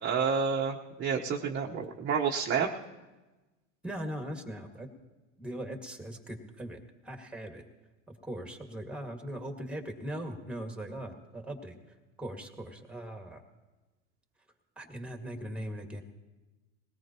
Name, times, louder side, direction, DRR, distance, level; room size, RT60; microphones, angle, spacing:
voice 1, 0.0-2.7, right 6 dB, 30° right, -1 dB, 1.2 m, -29 dB
voice 2, 3.8-4.9 5.4-7.6 8.1-11.8 12.2-13.4 14.8-16.0, right 1 dB, 5° right, 4 dB, 2.0 m, -40 dB
21.0 x 17.5 x 3.0 m, 1.1 s
hypercardioid pair, 95°, 38 cm